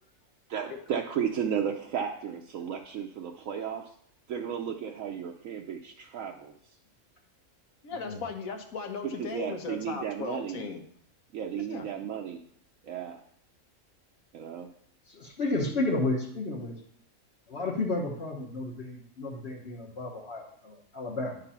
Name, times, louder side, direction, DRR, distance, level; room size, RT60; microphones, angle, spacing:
voice 1, 0.5-3.9 4.3-6.8 9.2-10.6 11.3-12.4 12.8-13.2 14.3-14.7, right 8 dB, 75° right, 2 dB, 1.0 m, -34 dB
voice 2, 7.8-10.8 11.7-11.9, left 5 dB, 80° left, 5 dB, 1.4 m, -37 dB
voice 3, 15.1-16.7 17.5-21.4, left 2 dB, 50° left, -5 dB, 1.4 m, -32 dB
10.0 x 4.0 x 5.6 m, 0.65 s
omnidirectional pair, 1.4 m